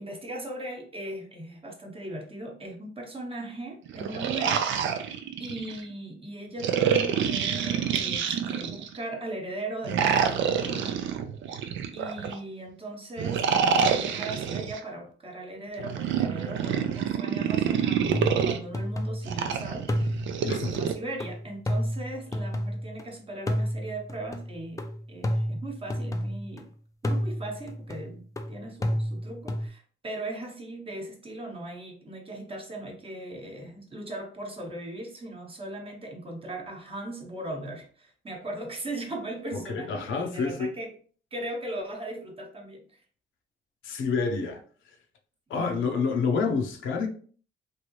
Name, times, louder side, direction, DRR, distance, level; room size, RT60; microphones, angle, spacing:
voice 1, 0.0-4.7 5.4-11.0 11.9-26.7 27.0-41.0 41.3-43.0 45.6-45.7, right 1 dB, 30° right, 1.0 m, -38 dB
sound 1, 3.9-5.8 6.6-9.0 9.8-12.4 13.2-14.8 15.8-18.6 19.3-20.9, right 7 dB, 75° right, 0.5 m, -27 dB
sound 2, 18.1-19.5 19.9-23.0 23.5-26.6 27.0-29.7, equal, 15° left, 0.4 m, -31 dB
voice 2, 39.5-40.7 43.8-44.6 45.5-47.1, left 4 dB, 80° left, 0.8 m, -28 dB
3.2 x 2.6 x 3.0 m
cardioid pair, 90°, 20 cm